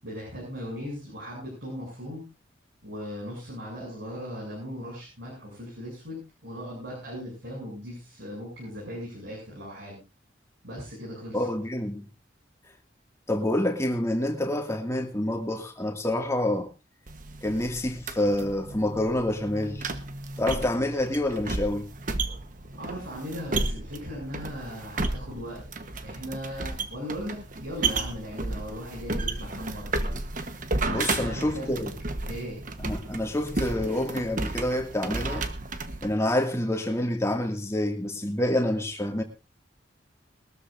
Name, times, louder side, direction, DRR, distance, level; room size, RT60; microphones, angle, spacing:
voice 1, 0.0-2.3 2.8-10.0 10.6-11.5 22.8-25.6 26.0-30.0 31.0-31.8 32.2-32.6, equal, 70° right, 7.7 m, -38 dB
voice 2, 11.3-12.1 13.3-16.7 17.4-19.9 20.4-21.9 30.9-31.9 32.8-35.5 36.0-39.2, left 1 dB, 15° left, 2.2 m, -27 dB
sound 1, 17.1-36.1, right 3 dB, 45° right, 1.2 m, -33 dB
22.0 x 13.5 x 2.7 m
head